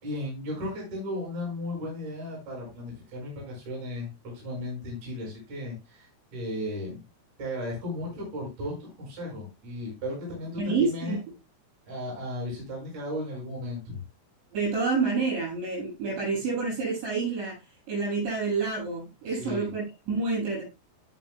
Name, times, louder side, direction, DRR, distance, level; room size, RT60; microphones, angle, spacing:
voice 1, 0.0-7.0 7.4-11.2 11.9-14.0 19.3-19.7, left 1 dB, 35° right, -2 dB, 7.3 m, -35 dB
voice 2, 10.6-11.2 14.5-17.6 17.9-20.6, right 4 dB, 60° right, -3 dB, 9.7 m, -28 dB
18.0 x 6.5 x 2.2 m, 0.24 s
omnidirectional pair, 5.7 m